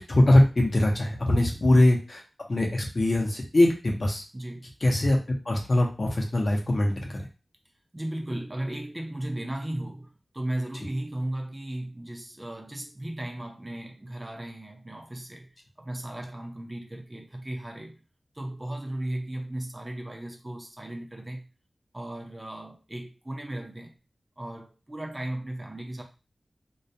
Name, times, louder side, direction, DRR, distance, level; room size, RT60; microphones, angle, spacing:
voice 1, 0.0-2.2 2.5-4.2 4.8-5.2 5.5-7.3, left 1 dB, 50° left, 0.6 m, -22 dB
voice 2, 4.3-4.7 7.9-18.0 18.3-21.4 21.9-23.9 24.4-26.0, right 1 dB, 25° right, 0.4 m, -36 dB
2.3 x 2.1 x 2.7 m
wide cardioid pair, 85°, 0 cm